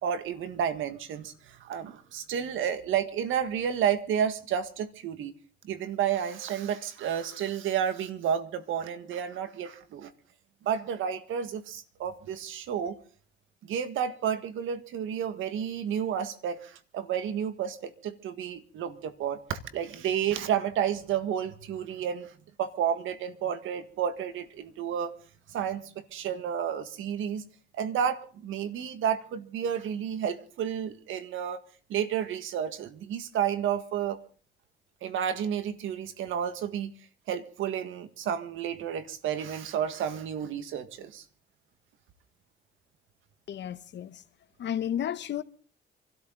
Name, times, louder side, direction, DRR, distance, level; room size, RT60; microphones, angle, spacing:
voice 1, 0.0-5.3 5.6-10.1 10.6-13.0 13.7-22.3 22.6-25.1 25.5-27.4 27.8-31.6 31.9-34.2 35.0-36.9 37.3-41.2, right 8 dB, 85° right, 1.8 m, -31 dB
voice 2, 43.5-44.2 44.6-45.4, left 10 dB, 65° left, 1.0 m, -32 dB
27.0 x 13.0 x 3.9 m
cardioid pair, 90°, 20 cm